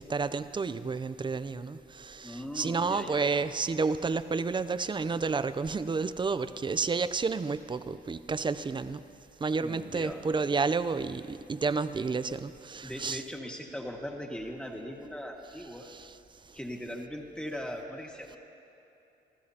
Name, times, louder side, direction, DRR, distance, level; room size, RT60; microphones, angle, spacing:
voice 1, 0.0-9.0 9.4-13.2 15.8-16.2, right 4 dB, 25° right, 13 dB, 0.5 m, -31 dB
voice 2, 2.2-3.2 9.6-10.2 12.8-15.9 16.5-18.4, equal, 5° left, 0 dB, 1.8 m, -39 dB
27.0 x 14.5 x 2.8 m, 2.8 s
cardioid pair, 90°, 20 cm